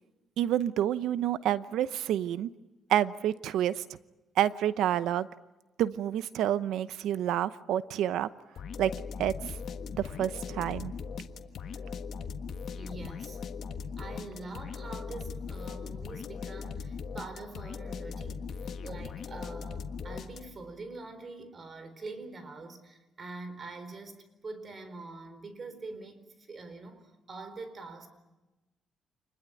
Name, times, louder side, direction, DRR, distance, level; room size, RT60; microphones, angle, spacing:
voice 1, 0.4-2.5 2.9-3.8 4.4-5.3 5.8-8.3 8.8-8.9 9.2-9.6 10.0-10.9, right 11 dB, 85° right, 0.8 m, -28 dB
sound 1, 8.6-20.7, left 5 dB, 65° left, 1.4 m, -39 dB
voice 2, 12.7-13.4 14.0-28.1, right 3 dB, 40° right, 4.2 m, -44 dB
27.0 x 21.0 x 9.0 m
cardioid pair, 90°, 0 cm